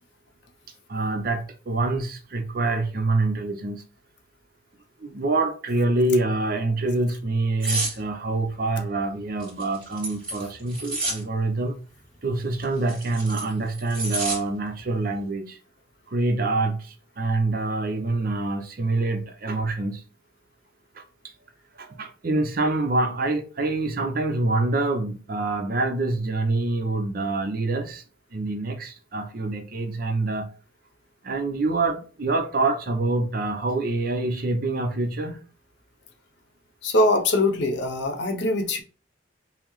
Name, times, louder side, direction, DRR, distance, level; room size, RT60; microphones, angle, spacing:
voice 1, 0.9-3.8 5.0-11.8 12.2-15.6 16.1-20.0 21.8-28.0 28.3-30.5 31.2-35.4, right 2 dB, 50° right, 0.6 m, -26 dB
sound 1, 7.6-7.9 9.4-11.2 12.6-14.4 14.8-15.0, right 2 dB, 25° right, 1.9 m, -29 dB
voice 2, 36.8-38.8, left 2 dB, 65° left, 0.6 m, -22 dB
5.6 x 2.0 x 3.0 m
head